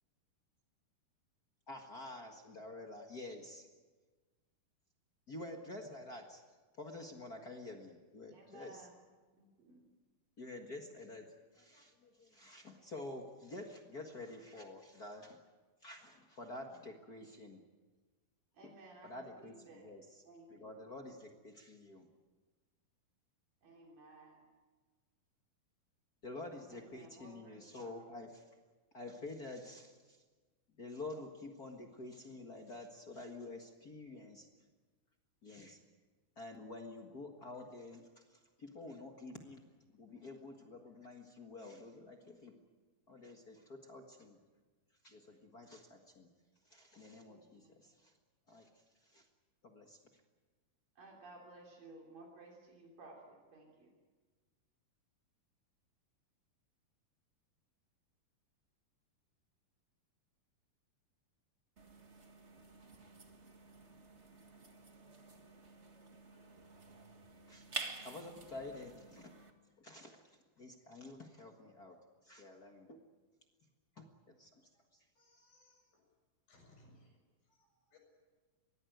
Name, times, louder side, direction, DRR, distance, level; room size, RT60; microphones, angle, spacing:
voice 1, 1.7-3.6 5.3-6.4 6.7-8.9 10.4-11.2 11.5-15.4 15.8-17.6 19.0-20.2 20.5-22.1 26.2-28.4 28.9-30.2 30.8-34.5 35.4-35.8 36.3-39.6 39.9-42.6 43.1-44.4 45.0-46.3 46.6-48.1 48.5-48.7 49.0-49.2 49.6-50.0 67.5-67.6 67.9-69.3 69.8-72.0 72.2-73.0 73.9-74.6 74.9-75.0, left 2 dB, 40° left, 2 dB, 1.4 m, -49 dB
voice 2, 8.3-9.0 9.3-9.9 18.5-19.9 20.2-20.8 23.6-24.4 26.7-28.2 47.3-47.7 51.0-53.9, right 2 dB, 70° right, 0 dB, 4.9 m, -57 dB
sound 1, 61.8-69.5, right 3 dB, 45° right, 0.9 m, -50 dB
voice 3, 75.2-76.1 76.5-78.0, left 1 dB, 70° left, 2 dB, 8.8 m, -66 dB
24.0 x 19.0 x 9.3 m, 1.3 s
omnidirectional pair, 4.1 m